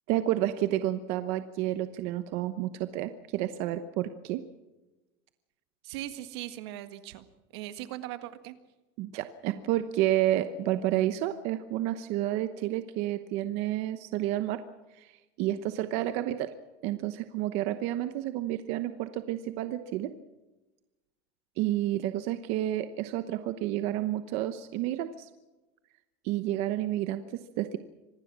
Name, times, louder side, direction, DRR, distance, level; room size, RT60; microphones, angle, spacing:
voice 1, 0.1-4.4 9.0-14.6 15.0-15.1 15.4-16.5 16.8-20.1 21.6-25.3 26.2-27.8, right 13 dB, 50° right, 10 dB, 1.0 m, -30 dB
voice 2, 5.8-7.3 7.5-8.6, right 14 dB, 80° right, 10 dB, 1.7 m, -39 dB
25.5 x 18.5 x 6.2 m, 1.1 s
cardioid pair, 170°, 14 cm